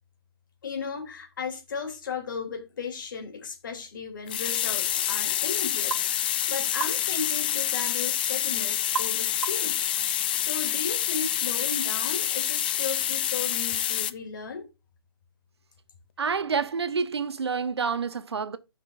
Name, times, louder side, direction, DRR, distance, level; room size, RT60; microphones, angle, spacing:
voice 1, 0.6-9.8 10.1-14.7, left 5 dB, 50° left, 3.0 m, -35 dB
sound 1, 4.3-14.1, left 11 dB, 20° left, 0.4 m, -27 dB
sound 2, 5.9-6.1 6.8-7.0 8.9-9.2 9.4-9.8, right 5 dB, 70° right, 1.4 m, -32 dB
voice 2, 16.2-18.6, right 5 dB, 85° right, 1.0 m, -28 dB
14.5 x 6.0 x 2.5 m
hypercardioid pair, 165°, 13 cm